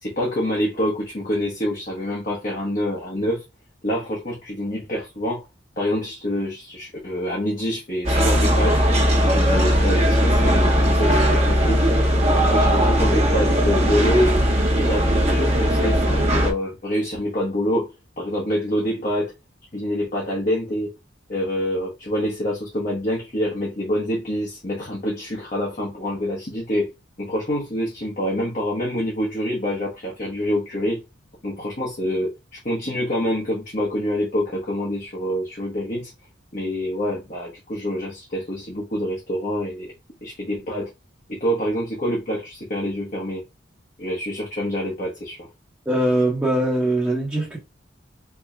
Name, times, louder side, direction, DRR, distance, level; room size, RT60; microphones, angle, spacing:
voice 1, 0.0-3.4 3.8-5.4 5.8-11.9 12.3-14.4 14.7-19.3 19.7-20.9 21.3-26.9 27.2-31.0 31.4-32.3 32.6-36.1 36.5-39.9 40.2-40.9 41.3-43.4 44.0-45.5, equal, 40° left, 1.0 m, -26 dB
sound 1, 8.0-16.5, equal, 35° right, 1.1 m, -18 dB
voice 2, 45.9-47.6, right 1 dB, 10° right, 1.0 m, -21 dB
4.5 x 2.9 x 2.3 m
head